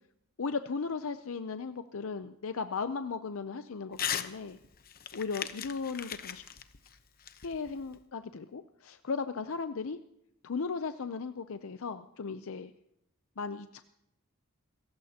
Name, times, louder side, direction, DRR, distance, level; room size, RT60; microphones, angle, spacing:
voice 1, 0.4-4.6 5.1-6.4 7.4-10.0 10.4-12.7 13.4-13.8, left 5 dB, 65° left, 10 dB, 0.6 m, -36 dB
Crumpling crinkling / Tearing, 3.9-4.3 4.6-8.0, left 9 dB, 45° left, 0.9 m, -38 dB
28.0 x 15.0 x 2.9 m, 0.82 s
head